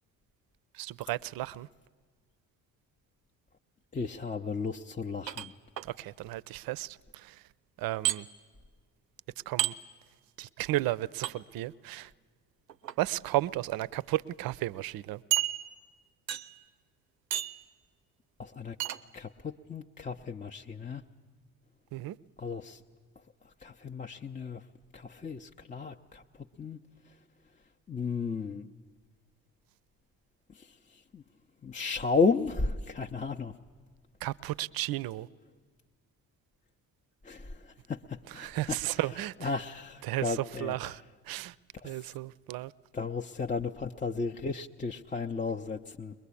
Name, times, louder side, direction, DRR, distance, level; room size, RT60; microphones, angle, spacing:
voice 1, 0.8-1.7 6.0-7.0 7.8-8.3 9.5-9.7 10.4-12.1 13.0-15.2 21.9-22.2 34.2-35.3 38.3-39.5 40.0-41.0 41.3-41.5 41.8-42.7, right 16 dB, 45° right, 0.6 m, -33 dB
voice 2, 3.9-5.5 18.4-18.7 19.1-21.0 22.4-22.8 23.6-24.6 24.9-26.2 26.6-26.8 27.9-28.7 31.1-31.2 31.6-33.5 37.3-37.4 37.9-38.0 38.3-38.8 39.4-40.8 41.8-41.9 42.9-46.1, left 4 dB, 15° left, 0.6 m, -33 dB
sound 1, 5.3-5.9 8.0-8.2 9.6-9.8 11.2-11.3 12.7-13.0 13.7-13.8 14.2-14.3 15.3-15.9 16.3-16.6 17.3-17.6 18.8-19.0, right 12 dB, 90° right, 0.6 m, -31 dB
21.5 x 21.5 x 8.5 m
hypercardioid pair, 50°, 48 cm